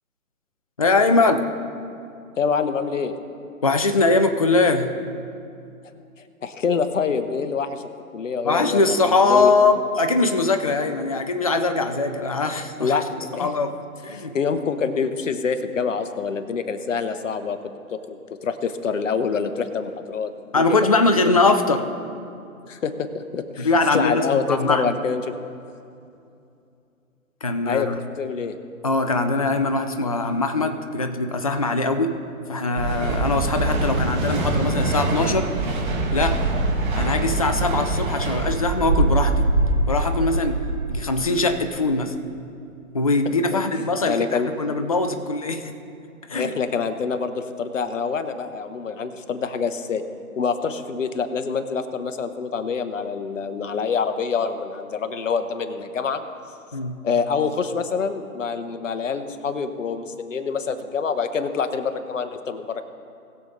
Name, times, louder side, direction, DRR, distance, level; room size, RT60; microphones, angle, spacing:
voice 1, 0.8-1.4 3.6-5.0 8.5-13.0 13.4-13.7 14.0-14.3 20.5-21.8 23.6-24.9 27.4-28.0 28.8-32.1 32.5-35.5 36.1-36.4 36.9-39.5 39.9-40.6 40.9-42.1 42.9-45.6 46.3-46.5 56.7-57.0, left 3 dB, 25° left, 7 dB, 0.4 m, -21 dB
voice 2, 2.4-3.1 6.4-7.8 8.1-9.5 12.8-13.5 14.1-17.6 17.9-20.8 21.2-21.3 22.6-25.2 27.6-27.9 28.2-28.6 44.0-44.5 46.3-50.0 50.4-56.2 57.0-62.8, left 5 dB, 60° left, 9 dB, 1.1 m, -26 dB
sound 1, 32.8-41.1, right 2 dB, 30° right, 2.0 m, -23 dB
20.0 x 6.8 x 3.9 m, 2.6 s
figure-of-eight pair, 140°, 43 cm